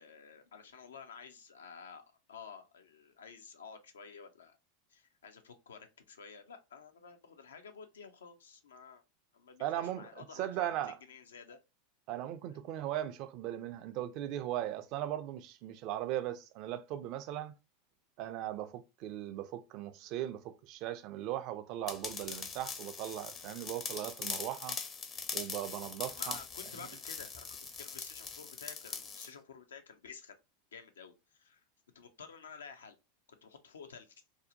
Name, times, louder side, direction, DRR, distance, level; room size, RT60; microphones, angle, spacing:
voice 1, 0.0-4.6 4.9-9.0 9.3-11.6 12.5-12.7 26.2-30.4 30.7-31.6 31.9-33.0 33.3-34.1, left 6 dB, 85° left, 0.4 m, -52 dB
voice 2, 9.6-11.0 12.1-17.5 18.2-24.8 25.3-26.4, right 12 dB, 50° right, 0.3 m, -38 dB
sound 1, 21.9-29.3, left 5 dB, 30° left, 0.5 m, -42 dB
2.6 x 2.0 x 2.6 m
hypercardioid pair, 95°, 0 cm